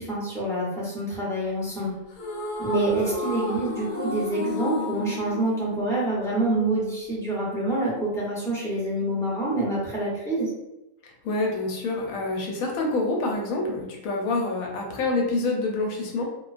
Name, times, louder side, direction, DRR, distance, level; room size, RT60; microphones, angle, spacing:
voice 1, 0.0-1.9 2.6-10.5, right 2 dB, 5° left, -7 dB, 0.5 m, -27 dB
sound 1, 2.1-6.5, left 3 dB, 65° left, 0.4 m, -32 dB
voice 2, 11.2-16.3, left 2 dB, 90° left, 0 dB, 1.0 m, -27 dB
2.4 x 2.2 x 2.4 m, 0.92 s
omnidirectional pair, 1.4 m